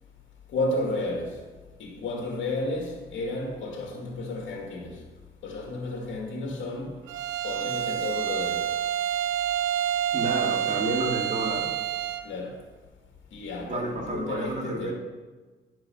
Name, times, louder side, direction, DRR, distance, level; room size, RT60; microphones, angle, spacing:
voice 1, 0.5-1.4 1.8-5.0 5.4-7.0 7.4-8.6 12.2-12.6 13.3-14.9, left 2 dB, 70° left, 2.1 m, -32 dB
Bowed string instrument, 7.1-12.3, right 10 dB, 80° right, 0.7 m, -28 dB
voice 2, 10.1-11.7 13.7-14.9, right 2 dB, 35° right, 2.3 m, -30 dB
10.0 x 4.7 x 6.7 m
cardioid pair, 90°, 20 cm